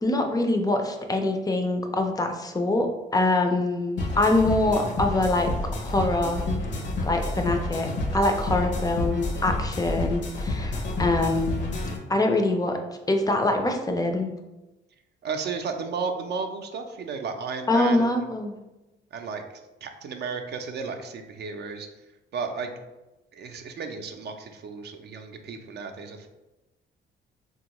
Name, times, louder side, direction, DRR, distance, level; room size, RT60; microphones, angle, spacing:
voice 1, 0.0-2.9 3.1-6.4 7.0-7.9 8.1-11.7 12.1-12.8 13.1-14.3 17.7-18.5, left 2 dB, 20° left, 4 dB, 0.4 m, -24 dB
sound 1, 4.0-12.0, left 2 dB, 65° left, 0.7 m, -29 dB
voice 2, 15.2-18.3 19.1-22.1 22.3-22.7 23.3-26.3, right 5 dB, 55° right, 5 dB, 0.5 m, -34 dB
3.4 x 2.3 x 2.9 m, 1.0 s
cardioid pair, 90°, 20 cm